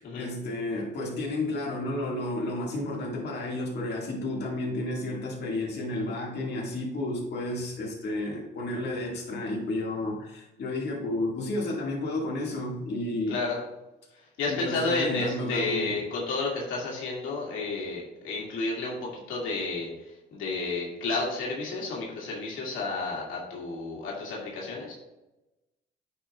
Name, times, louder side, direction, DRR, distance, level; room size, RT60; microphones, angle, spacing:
voice 1, 0.0-13.4 14.5-15.9, left 1 dB, 60° left, -3 dB, 1.9 m, -32 dB
voice 2, 13.3-13.6 14.4-19.9 20.3-24.9, left 3 dB, 85° left, -4 dB, 2.2 m, -31 dB
9.0 x 6.5 x 2.4 m, 0.99 s
cardioid pair, 90°, 20 cm